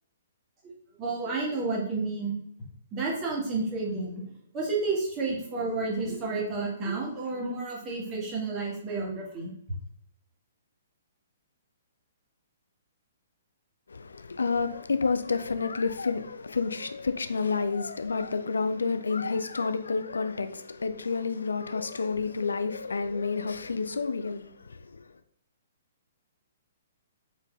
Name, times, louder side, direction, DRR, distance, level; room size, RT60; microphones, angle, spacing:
voice 1, 1.0-2.3 2.9-4.2 4.5-9.5, right 3 dB, 25° right, 1.7 m, -30 dB
voice 2, 13.9-25.1, left 4 dB, 65° left, 0.4 m, -30 dB
4.5 x 4.4 x 2.5 m
figure-of-eight pair, 120°, 0 cm